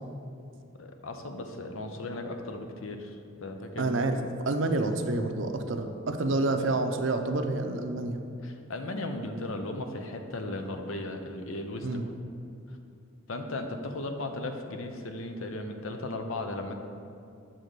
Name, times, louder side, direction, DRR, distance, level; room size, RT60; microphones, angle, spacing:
voice 1, 0.8-4.0 8.4-11.9 13.3-16.7, left 2 dB, 75° left, 5 dB, 0.7 m, -36 dB
voice 2, 3.8-4.2 4.4-8.2 11.8-12.1, right 2 dB, 65° right, 6 dB, 0.6 m, -28 dB
8.0 x 3.7 x 6.6 m, 2.5 s
head